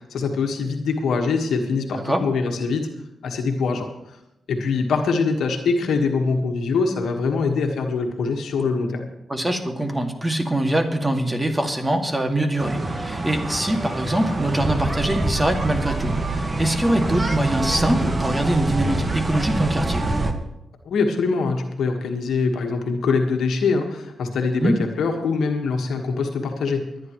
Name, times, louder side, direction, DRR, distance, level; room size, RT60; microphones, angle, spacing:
voice 1, 0.0-2.9 3.2-3.9 4.5-9.1 20.8-26.9, left 4 dB, 75° left, 3 dB, 1.5 m, -23 dB
voice 2, 9.3-20.1 24.5-24.8, right 1 dB, 15° right, 4 dB, 2.1 m, -23 dB
sound 1, 12.6-20.3, right 2 dB, 35° right, 1.5 m, -25 dB
25.0 x 9.9 x 3.1 m, 0.89 s
supercardioid pair, 50°, 0 cm